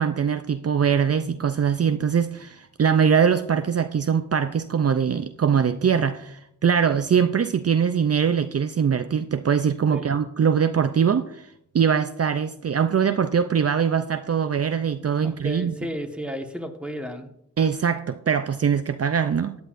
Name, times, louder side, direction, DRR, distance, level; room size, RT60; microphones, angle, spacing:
voice 1, 0.0-11.5 11.7-15.7 17.6-19.6, right 7 dB, 50° right, 9 dB, 0.5 m, -22 dB
voice 2, 15.4-17.3, equal, 5° right, 3 dB, 1.4 m, -33 dB
14.5 x 9.6 x 2.6 m, 0.75 s
cardioid pair, 55°, 31 cm